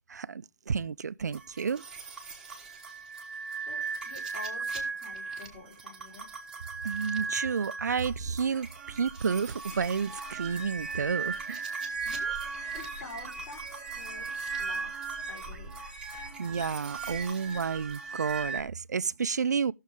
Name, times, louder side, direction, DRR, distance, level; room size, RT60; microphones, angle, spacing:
voice 1, 0.1-1.8 6.8-11.6 16.1-19.7, right 6 dB, 90° right, 0.5 m, -31 dB
sound 1, 1.3-18.6, right 4 dB, 5° right, 1.2 m, -37 dB
voice 2, 3.7-6.3 12.0-12.4 12.7-15.8, left 4 dB, 30° left, 3.9 m, -48 dB
16.5 x 6.4 x 3.5 m
hypercardioid pair, 165°, 9 cm